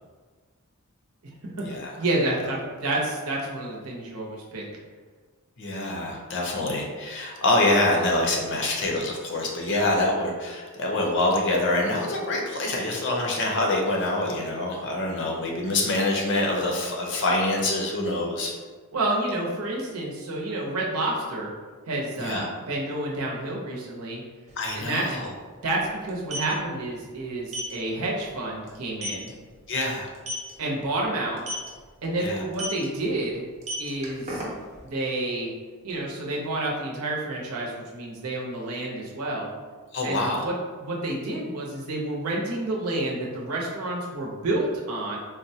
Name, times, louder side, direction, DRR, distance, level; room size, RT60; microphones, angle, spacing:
voice 1, 2.0-4.6 18.9-21.5 21.9-24.2 24.7-25.1 25.6-29.3 30.6-31.4 32.0-33.4 33.8-34.4 34.8-35.5 35.8-39.5 40.0-40.5 40.8-45.2, right 2 dB, 80° right, -3 dB, 0.8 m, -29 dB
voice 2, 5.6-18.5 22.2-22.5 24.6-25.3 29.7-30.1 32.2-32.4 39.9-40.5, left 2 dB, 55° left, 0 dB, 0.6 m, -25 dB
sound 1, 24.5-24.6 24.8-25.0 26.0-26.5 27.5-27.7 28.2-28.3 28.7-28.8 29.0-29.3 30.1-30.5 31.4-31.7 32.5-32.8 33.5-34.8, equal, 30° right, 0.7 m, -32 dB
4.0 x 2.1 x 2.7 m, 1.5 s
head